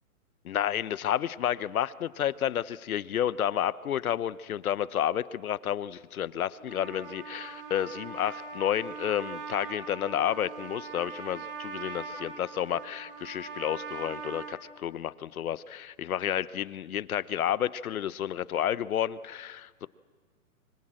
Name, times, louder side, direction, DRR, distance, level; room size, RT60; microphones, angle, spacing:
voice 1, 0.4-19.9, left 10 dB, 70° left, 18 dB, 0.9 m, -31 dB
Trumpet, 6.6-14.6, right 6 dB, 40° right, 2.4 m, -41 dB
25.5 x 24.0 x 7.6 m, 1.5 s
hypercardioid pair, 175°, 44 cm